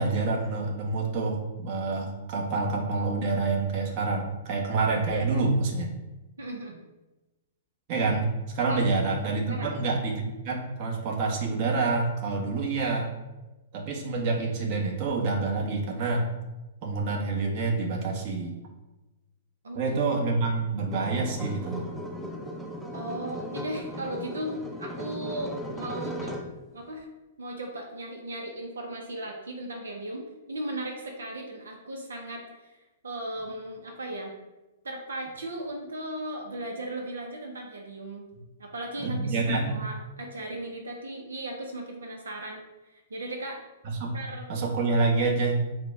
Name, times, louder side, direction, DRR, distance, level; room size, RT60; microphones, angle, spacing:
voice 1, 0.0-5.9 7.9-8.3 8.5-13.1 13.7-16.3 16.8-18.5 19.7-21.9 39.0-39.8 44.0-44.1 44.5-45.6, right 3 dB, 45° right, 0 dB, 1.1 m, -27 dB
voice 2, 6.4-6.8 8.6-8.9 9.5-9.8 19.6-20.0 22.9-26.4 26.7-27.1 27.4-34.3 34.8-38.2 38.6-43.6 44.1-44.5, right 1 dB, 85° right, 2 dB, 0.6 m, -37 dB
sound 1, 20.9-26.6, equal, 5° right, 0.5 m, -37 dB
4.8 x 2.2 x 4.6 m, 1.1 s
hypercardioid pair, 125°, 0 cm